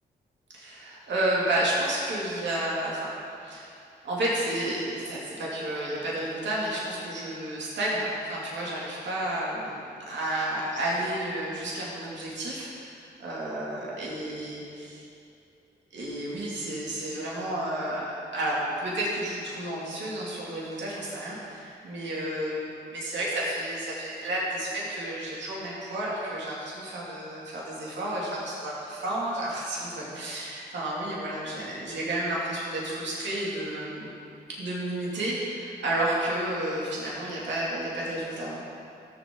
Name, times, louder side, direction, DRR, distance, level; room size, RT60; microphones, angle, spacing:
voice 1, 0.5-3.1 3.4-15.0 15.9-18.1 18.3-34.1 34.6-38.6, right 1 dB, 85° right, -6 dB, 2.3 m, -31 dB
14.5 x 7.2 x 3.8 m, 2.5 s
cardioid pair, 50°, 18 cm